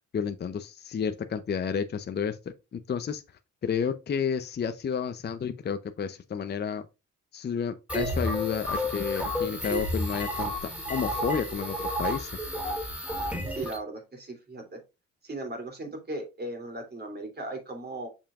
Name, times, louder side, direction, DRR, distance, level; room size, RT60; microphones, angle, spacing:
voice 1, 0.1-2.4 2.7-3.2 3.6-6.8 7.3-12.3, left 7 dB, 35° left, 0.7 m, -31 dB
sound 1, 7.9-13.8, left 1 dB, 5° right, 2.8 m, -31 dB
voice 2, 13.5-14.8 15.2-18.1, right 2 dB, 35° right, 3.0 m, -37 dB
6.9 x 5.6 x 2.4 m
cardioid pair, 90°, 30 cm